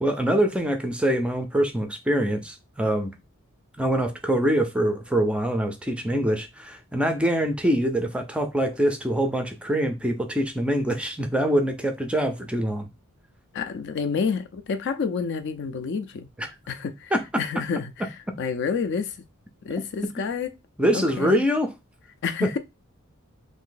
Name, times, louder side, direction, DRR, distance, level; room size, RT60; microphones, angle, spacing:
voice 1, 0.0-3.1 3.8-12.9 16.4-16.5 17.1-17.4 20.8-21.7 22.4-22.5, right 1 dB, 5° right, 0.4 m, -24 dB
voice 2, 13.5-16.3 16.7-17.1 17.4-19.2 19.6-20.5 20.9-21.4 22.2-22.6, left 5 dB, 55° left, 0.4 m, -29 dB
2.6 x 2.5 x 3.8 m
head